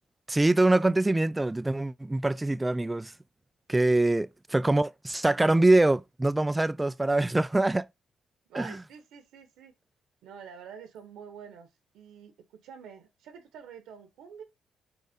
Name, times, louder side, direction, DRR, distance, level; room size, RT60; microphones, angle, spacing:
voice 1, 0.3-3.1 3.7-7.9 8.5-8.8, right 2 dB, 15° right, 0.3 m, -24 dB
voice 2, 8.5-9.7 10.2-11.7 11.9-14.4, right 7 dB, 85° right, 1.1 m, -47 dB
4.7 x 4.1 x 5.1 m
cardioid pair, 95°, 0 cm